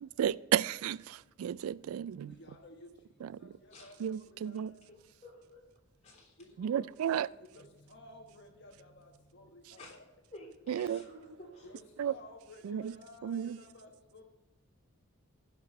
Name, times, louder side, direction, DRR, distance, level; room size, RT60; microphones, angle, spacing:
voice 1, 0.0-2.3 3.2-3.6 4.0-4.7 6.6-7.3 10.7-11.1 12.0-12.1 12.6-12.9 13.2-13.6, right 9 dB, 80° right, 0.3 m, -33 dB
voice 2, 2.4-2.9 3.4-4.8 6.4-10.0 11.6-14.2, left 2 dB, 55° left, 1.3 m, -54 dB
voice 3, 4.5-5.6 6.0-6.3 9.8-9.9 10.3-11.6 12.8-12.9, left 1 dB, 30° left, 3.3 m, -52 dB
15.5 x 6.0 x 5.2 m
head